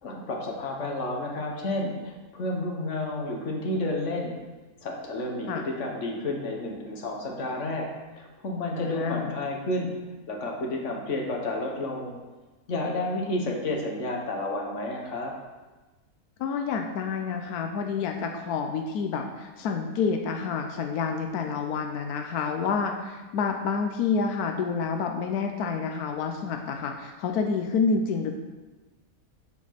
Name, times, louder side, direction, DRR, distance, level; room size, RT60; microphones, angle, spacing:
voice 1, 0.0-4.3 4.8-7.9 8.1-9.9 10.3-12.2 12.7-15.3, left 2 dB, 55° left, 0 dB, 1.6 m, -31 dB
voice 2, 8.8-9.4 16.4-28.4, left 5 dB, 90° left, 4 dB, 1.2 m, -28 dB
8.3 x 4.5 x 5.8 m, 1.2 s
omnidirectional pair, 1.6 m